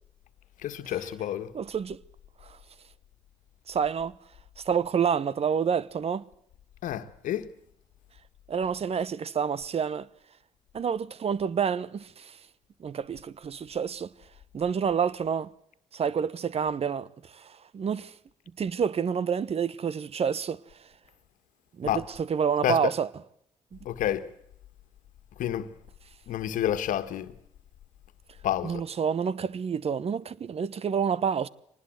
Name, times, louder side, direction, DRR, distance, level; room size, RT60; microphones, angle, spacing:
voice 1, 0.6-1.5 6.8-7.5 21.8-22.0 22.6-22.9 23.8-24.3 25.4-25.7 26.3-27.3 28.4-28.8, left 11 dB, 75° left, 1.7 m, -29 dB
voice 2, 1.5-2.0 2.4-2.6 3.7-4.2 4.6-6.3 8.5-10.1 10.7-12.4 12.8-14.1 14.5-15.5 15.9-18.1 18.6-20.6 21.8-23.1 23.7-23.8 28.6-31.5, right 7 dB, 50° right, 1.0 m, -28 dB
24.5 x 19.5 x 7.8 m
supercardioid pair, 60°, 14 cm